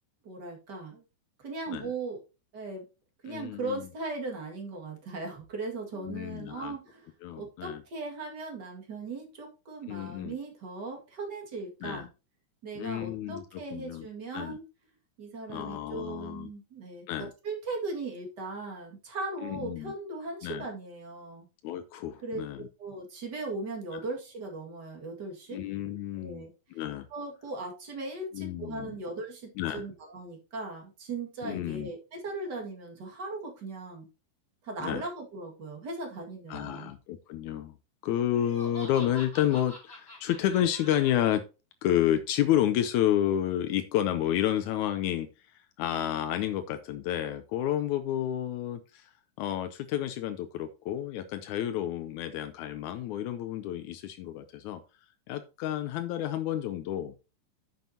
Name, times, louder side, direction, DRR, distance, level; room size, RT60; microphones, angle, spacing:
voice 1, 0.2-1.0 1.4-2.2 2.5-2.8 3.2-12.1 12.6-14.6 15.2-21.5 22.2-22.4 22.8-25.6 26.1-26.5 27.1-34.1 34.6-36.9, right 3 dB, 35° right, 1 dB, 2.0 m, -38 dB
voice 2, 3.3-3.8 6.0-6.8 7.2-7.8 9.9-10.4 11.8-12.1 12.7-14.1 14.3-14.6 15.5-16.5 17.1-17.3 19.4-19.9 20.4-20.7 21.6-22.7 23.9-24.0 25.5-26.4 26.7-27.1 28.3-28.9 29.6-29.9 31.4-31.9 34.8-35.0 36.5-37.7 38.0-41.4 41.8-45.3 45.8-49.1 49.4-54.8 55.3-57.2, left 11 dB, 90° left, 10 dB, 1.7 m, -30 dB
Laughter, 38.3-41.4, left 1 dB, 10° left, 4.2 m, -46 dB
9.3 x 7.5 x 2.8 m, 0.30 s
omnidirectional pair, 4.2 m